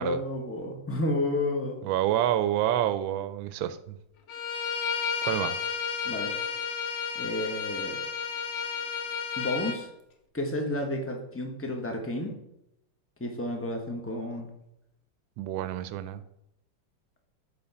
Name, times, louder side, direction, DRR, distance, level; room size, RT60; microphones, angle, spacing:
voice 1, 0.0-1.8 6.0-6.3 7.1-8.0 9.4-9.9 10.3-12.3 13.2-14.5, left 1 dB, 10° left, 3 dB, 0.7 m, -31 dB
voice 2, 1.8-4.0 5.2-5.6 15.4-16.2, right 12 dB, 80° right, 12 dB, 1.4 m, -28 dB
Bowed string instrument, 4.3-9.8, left 6 dB, 70° left, 1.6 m, -32 dB
8.7 x 4.5 x 5.6 m, 0.81 s
omnidirectional pair, 2.2 m